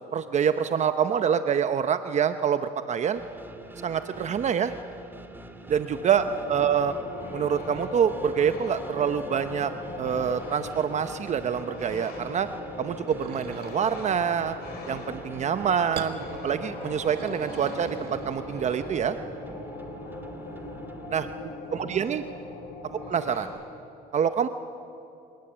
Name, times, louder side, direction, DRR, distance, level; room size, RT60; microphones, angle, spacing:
voice 1, 0.1-3.2 3.8-4.7 5.7-6.2 6.5-6.9 7.3-9.7 10.0-12.5 12.8-14.6 14.9-19.2 21.1-21.3 21.7-22.2 23.1-23.5 24.1-24.5, right 8 dB, 45° right, 10 dB, 0.8 m, -26 dB
sound 1, 3.1-21.4, right 2 dB, 10° right, 2.1 m, -45 dB
sound 2, 5.8-23.4, left 2 dB, 65° left, 5.8 m, -39 dB
voice 2, 6.1-6.8 19.8-21.0 21.2-22.5 22.8-23.1, left 2 dB, 90° left, -7 dB, 7.8 m, -53 dB
sound 3, 13.1-14.1 15.9-16.2 16.8-18.7, right 9 dB, 75° right, 1.7 m, -41 dB
28.0 x 18.5 x 8.8 m, 2.9 s
cardioid pair, 110°, 17 cm